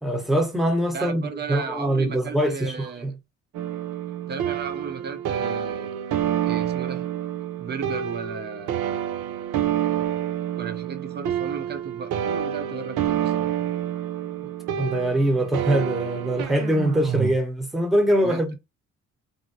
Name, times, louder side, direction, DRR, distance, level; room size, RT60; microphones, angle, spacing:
voice 1, 0.0-3.1 14.8-18.5, right 1 dB, ahead, 0.9 m, -23 dB
voice 2, 0.9-3.2 4.3-5.9 6.4-7.1 7.6-8.7 10.6-13.5 18.2-18.4, right 6 dB, 35° right, 0.7 m, -35 dB
sound 1, 3.5-17.3, right 10 dB, 90° right, 0.5 m, -28 dB
2.9 x 2.7 x 2.7 m
cardioid pair, 90°, 30 cm